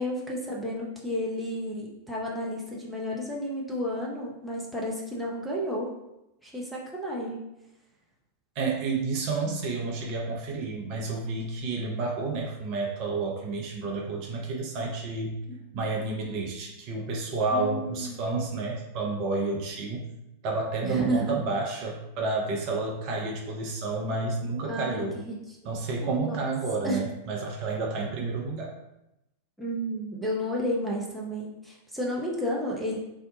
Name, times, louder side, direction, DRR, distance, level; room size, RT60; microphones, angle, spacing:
voice 1, 0.0-5.9 6.4-7.4 15.5-15.6 17.5-18.3 20.8-21.4 24.6-25.4 26.0-26.4 26.8-27.0 29.6-33.0, equal, ahead, -5 dB, 0.7 m, -32 dB
voice 2, 8.6-15.4 15.7-20.1 20.4-25.2 25.6-28.7, right 3 dB, 45° right, -1 dB, 0.6 m, -30 dB
2.8 x 2.2 x 3.7 m, 0.89 s
figure-of-eight pair, 90°, 0 cm